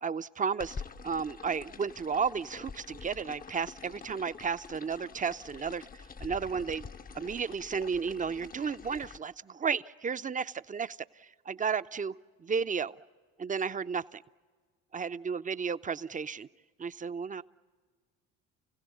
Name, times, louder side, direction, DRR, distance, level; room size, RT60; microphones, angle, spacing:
voice 1, 0.0-0.8 1.0-5.8 6.2-6.9 7.1-12.1 12.4-12.9 13.4-14.2 14.9-16.5 16.8-17.4, right 6 dB, 20° right, 13 dB, 0.6 m, -33 dB
sound 1, 0.6-9.2, left 5 dB, 25° left, 0.7 m, -46 dB
29.5 x 16.5 x 9.4 m, 1.5 s
hypercardioid pair, 60°, 36 cm